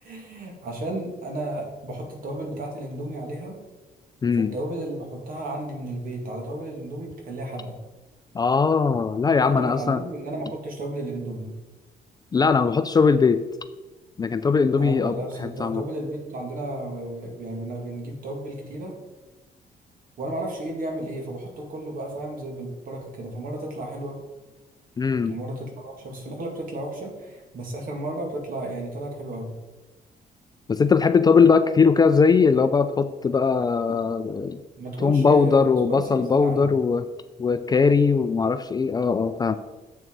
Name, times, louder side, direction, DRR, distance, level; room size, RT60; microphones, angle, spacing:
voice 1, 0.0-3.6 4.4-7.8 9.4-11.5 14.8-18.9 20.2-24.2 25.3-29.5 34.8-36.7, right 1 dB, 60° right, 1 dB, 2.2 m, -33 dB
voice 2, 4.2-4.5 8.3-10.0 12.3-13.4 14.2-15.2 15.4-15.8 25.0-25.3 30.7-34.6 35.0-37.1 37.4-39.6, left 5 dB, 25° left, 11 dB, 0.3 m, -20 dB
7.7 x 6.3 x 4.6 m, 1.1 s
cardioid pair, 130°, 16 cm